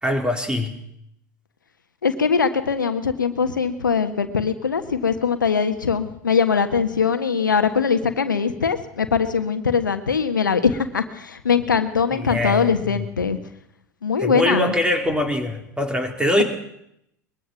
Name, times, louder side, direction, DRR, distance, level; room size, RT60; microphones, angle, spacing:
voice 1, 0.0-0.8 12.1-13.1 14.2-16.4, left 1 dB, 10° right, 5 dB, 4.0 m, -23 dB
voice 2, 2.0-13.4 14.0-14.7, left 6 dB, 80° left, 9 dB, 1.4 m, -21 dB
22.5 x 21.5 x 6.1 m, 0.78 s
figure-of-eight pair, 75°, 10 cm